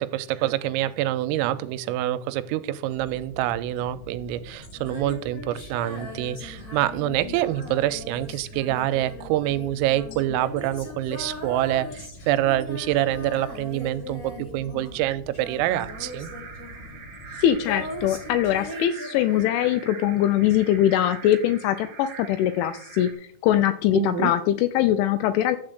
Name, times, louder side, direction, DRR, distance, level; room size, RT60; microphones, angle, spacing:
voice 1, 0.0-16.3 23.9-24.3, right 13 dB, 90° right, 14 dB, 3.2 m, -26 dB
sound 1, 2.9-18.7, equal, 65° left, 2.6 m, -45 dB
Female singing, 4.7-15.1 15.3-19.8, left 1 dB, 50° left, 1.0 m, -39 dB
sound 2, 15.6-23.1, right 6 dB, 60° right, 2.7 m, -43 dB
voice 2, 17.4-23.1 23.4-25.6, left 12 dB, 85° left, 11 dB, 2.8 m, -22 dB
11.5 x 4.4 x 7.8 m, 0.63 s
omnidirectional pair, 5.9 m